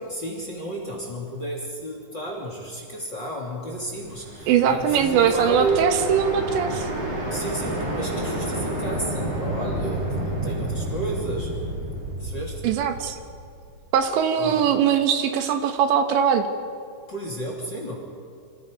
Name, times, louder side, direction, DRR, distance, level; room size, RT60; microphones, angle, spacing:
voice 1, 0.1-5.8 7.3-11.5 12.2-12.7 14.4-14.6 17.1-17.9, right 2 dB, 30° left, 0 dB, 2.7 m, -32 dB
sound 1, 3.8-13.8, right 1 dB, 50° right, 6.7 m, -30 dB
voice 2, 4.5-6.9 12.6-13.2 13.9-16.4, right 8 dB, 75° right, 6 dB, 3.4 m, -21 dB
27.0 x 26.0 x 5.3 m, 2.4 s
omnidirectional pair, 5.4 m